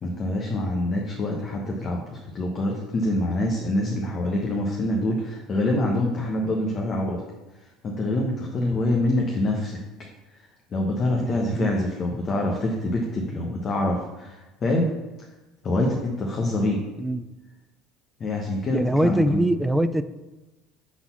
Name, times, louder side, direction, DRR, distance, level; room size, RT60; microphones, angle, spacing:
voice 1, 0.0-7.2 7.8-9.8 10.7-14.9 15.6-16.8 18.2-19.5, left 1 dB, 40° left, 0 dB, 1.1 m, -25 dB
voice 2, 11.2-11.7 17.0-17.3 18.7-20.0, right 1 dB, 5° right, 12 dB, 0.4 m, -23 dB
6.1 x 4.0 x 5.6 m, 1.1 s
hypercardioid pair, 80°, 0 cm